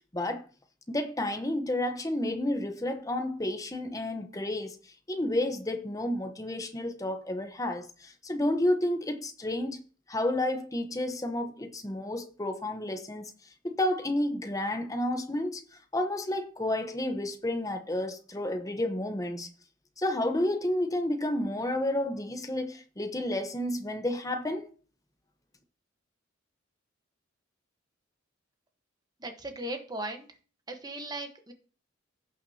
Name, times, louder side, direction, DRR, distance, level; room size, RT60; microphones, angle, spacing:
voice 1, 0.9-4.8 5.1-9.8 10.1-13.3 13.6-15.6 15.9-19.5 20.0-24.7, left 1 dB, 15° left, 0.9 m, -31 dB
voice 2, 29.2-30.4 30.7-31.5, right 1 dB, 20° right, 1.1 m, -37 dB
16.5 x 5.9 x 2.8 m
head